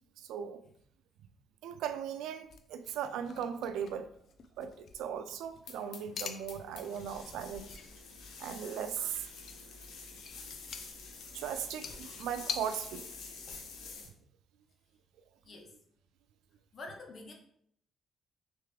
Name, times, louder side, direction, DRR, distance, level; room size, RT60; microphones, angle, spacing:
voice 1, 0.2-0.6 1.6-4.1 4.6-7.7 8.4-9.3 10.5-10.6 11.3-13.2, right 8 dB, 90° right, 10 dB, 0.3 m, -38 dB
sound 1, 2.4-12.6, left 7 dB, 65° left, 0.4 m, -46 dB
sound 2, 5.6-14.1, left 4 dB, 85° left, 0.8 m, -48 dB
voice 2, 16.7-17.3, left 2 dB, 45° left, 2 dB, 0.9 m, -46 dB
3.4 x 3.3 x 3.3 m, 0.68 s
cardioid pair, 90°, 0 cm